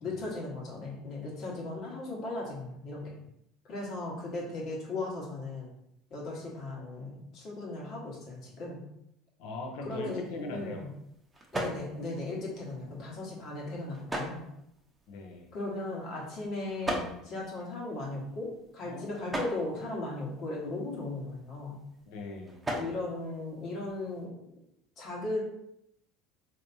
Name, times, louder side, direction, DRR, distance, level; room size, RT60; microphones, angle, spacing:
voice 1, 0.0-3.2 3.7-5.7 6.1-8.8 9.8-10.9 11.5-14.5 15.5-21.8 22.7-24.3 25.0-25.4, left 2 dB, 55° left, -3 dB, 1.3 m, -37 dB
voice 2, 9.4-10.8 15.1-15.5 18.8-19.2 22.1-22.6, left 2 dB, 70° left, 2 dB, 0.6 m, -40 dB
Bag on the floor, 9.9-24.3, right 1 dB, 15° right, 0.7 m, -42 dB
3.4 x 2.8 x 2.7 m, 0.78 s
supercardioid pair, 95°, 0 cm